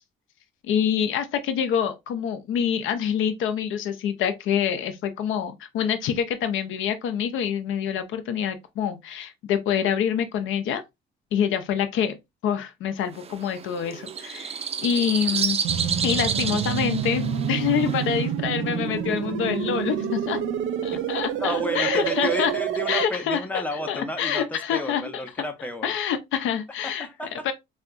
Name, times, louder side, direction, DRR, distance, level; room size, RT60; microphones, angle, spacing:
voice 1, 0.6-10.8 11.3-12.2 12.4-15.6 16.0-20.4 20.8-22.5 22.9-25.2 25.8-27.1 27.4-27.5, left 8 dB, 80° left, 0.5 m, -26 dB
sound 1, 13.1-18.3, right 6 dB, 30° right, 0.4 m, -30 dB
sound 2, 15.6-23.0, right 8 dB, 80° right, 0.5 m, -28 dB
voice 2, 21.4-25.9 26.8-27.5, left 1 dB, 10° left, 0.7 m, -32 dB
4.3 x 2.2 x 2.4 m
cardioid pair, 90°, 20 cm